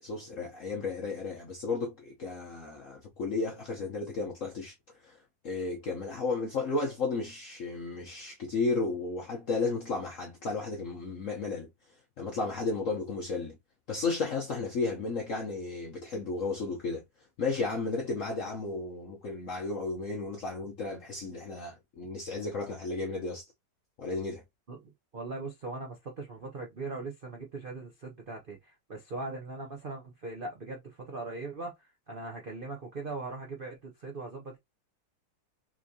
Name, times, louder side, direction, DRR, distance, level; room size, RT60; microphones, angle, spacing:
voice 1, 0.0-4.7 5.0-5.2 5.4-11.7 12.2-13.6 13.9-17.0 17.4-23.5 24.0-24.4, left 3 dB, 65° left, 0.8 m, -33 dB
voice 2, 24.7-31.7 32.1-34.6, right 3 dB, 60° right, 0.5 m, -40 dB
4.4 x 3.0 x 2.7 m
omnidirectional pair, 2.3 m